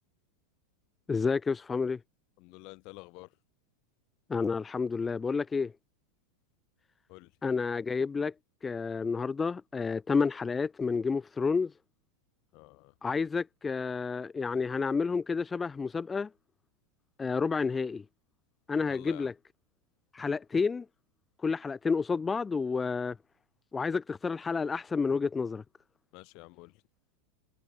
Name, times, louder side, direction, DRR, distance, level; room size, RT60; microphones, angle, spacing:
voice 1, 1.1-2.0 4.3-5.7 7.4-8.3 8.6-11.7 13.0-16.3 17.2-18.0 18.7-19.3 20.1-20.8 21.4-23.2 23.7-25.6, left 5 dB, 15° left, 1.2 m, -30 dB
voice 2, 2.4-3.3 7.1-7.3 12.5-12.9 18.9-19.3 26.1-26.7, left 28 dB, 45° left, 5.2 m, -49 dB
figure-of-eight pair, 90°, 0 cm